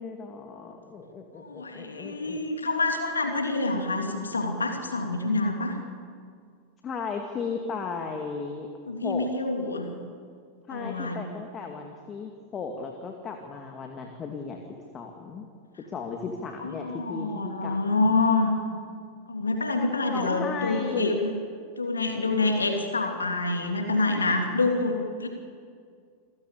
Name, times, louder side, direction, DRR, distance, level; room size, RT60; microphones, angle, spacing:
voice 1, 0.0-2.4 6.8-8.7 9.0-9.3 10.7-14.6 14.9-15.5 15.8-18.2 20.1-21.2, left 5 dB, 25° left, 4 dB, 2.2 m, -35 dB
voice 2, 1.4-5.8 8.9-9.9 10.7-11.2 16.6-18.5 19.3-21.3 21.8-25.3, left 3 dB, 75° left, 4 dB, 2.9 m, -27 dB
28.0 x 16.0 x 8.4 m, 2.2 s
figure-of-eight pair, 90°, 0 cm